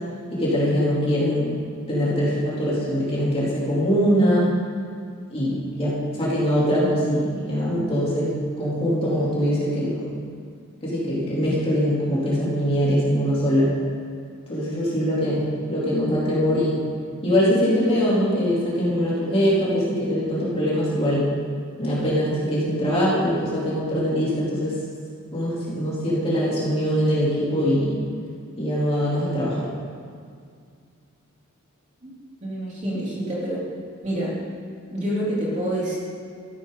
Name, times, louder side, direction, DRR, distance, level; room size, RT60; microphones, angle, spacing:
voice 1, 0.3-1.6 1.9-4.5 5.3-10.1 10.8-13.7 14.5-16.9 17.2-21.3 21.8-24.8 25.3-27.9 28.6-29.7, equal, 25° left, -8 dB, 3.6 m, -22 dB
voice 2, 32.4-33.6 34.0-34.4 34.9-36.0, right 1 dB, 35° right, -7 dB, 3.6 m, -27 dB
14.0 x 12.5 x 4.1 m, 2.2 s
head